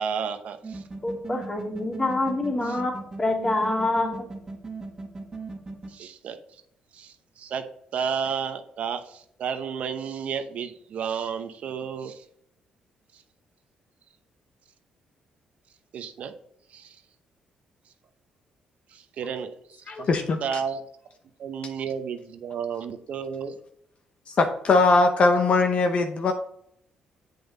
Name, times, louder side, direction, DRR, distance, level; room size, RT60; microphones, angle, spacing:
voice 1, 0.0-0.8 2.7-2.8 5.9-6.4 6.9-7.6 7.9-12.2 13.1-13.2 15.9-16.3 16.7-17.0 18.9-20.1 20.4-20.8 21.4-23.6, right 7 dB, 70° right, 8 dB, 0.8 m, -32 dB
sound 1, 0.6-5.9, right 3 dB, 25° right, 1.5 m, -37 dB
voice 2, 1.0-4.1, left 2 dB, 30° left, -2 dB, 3.1 m, -26 dB
voice 3, 19.9-20.6 24.4-26.3, left 3 dB, 55° left, 5 dB, 0.8 m, -21 dB
7.7 x 5.4 x 4.0 m, 0.70 s
cardioid pair, 80°, 2 cm